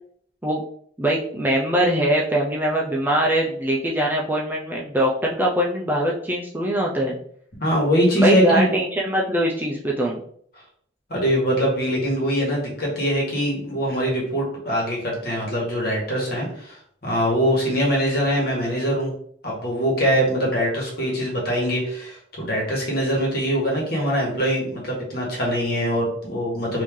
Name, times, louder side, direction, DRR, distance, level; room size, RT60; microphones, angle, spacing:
voice 1, 1.0-7.2 8.2-10.2, right 1 dB, 10° right, -3 dB, 0.4 m, -22 dB
voice 2, 7.6-8.7 11.1-19.1 19.4-26.8, equal, 55° left, -3 dB, 1.5 m, -23 dB
3.2 x 2.7 x 3.6 m, 0.62 s
head